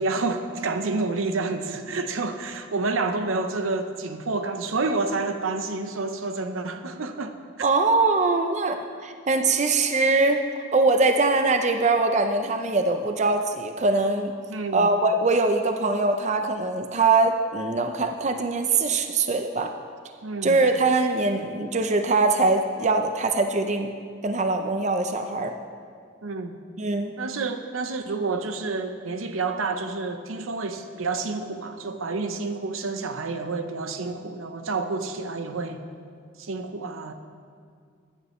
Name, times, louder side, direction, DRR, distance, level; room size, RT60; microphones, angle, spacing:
voice 1, 0.0-7.4 14.5-14.9 20.2-20.6 26.2-26.6 27.2-35.8 36.4-37.1, right 3 dB, 85° right, 7 dB, 0.8 m, -29 dB
voice 2, 7.6-8.8 9.0-10.4 10.7-14.3 14.7-19.7 20.4-23.9 24.2-25.5 26.8-27.1, right 3 dB, 35° right, 6 dB, 0.5 m, -22 dB
14.5 x 11.0 x 3.1 m, 2.2 s
head